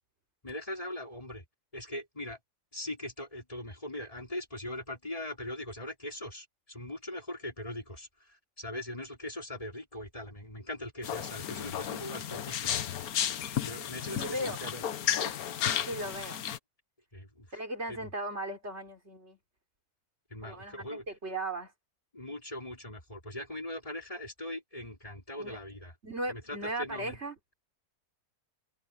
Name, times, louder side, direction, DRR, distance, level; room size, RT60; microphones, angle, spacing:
voice 1, 0.4-1.4 1.7-2.4 2.7-12.9 13.6-14.8 15.2-15.3 17.1-17.6 17.9-18.1 20.3-21.0 22.1-25.9 26.3-27.2, left 1 dB, 20° left, 4.4 m, -41 dB
sound 1, 11.0-16.6, left 10 dB, 70° left, 1.4 m, -33 dB
voice 2, 14.2-14.6 15.6-16.4 17.5-19.4 20.4-21.7 25.4-25.6 26.0-27.4, right 1 dB, 45° right, 4.5 m, -37 dB
omnidirectional pair, 1.6 m